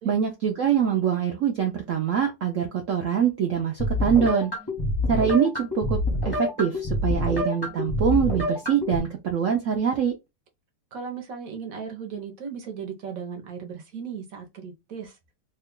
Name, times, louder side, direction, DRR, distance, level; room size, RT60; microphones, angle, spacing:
voice 1, 0.0-4.5 5.1-10.1, right 8 dB, 75° right, 0.7 m, -24 dB
sound 1, 3.8-9.0, left 1 dB, 25° left, 0.5 m, -27 dB
voice 2, 10.9-15.2, right 6 dB, 60° right, 1.0 m, -36 dB
3.0 x 2.3 x 3.6 m
omnidirectional pair, 2.0 m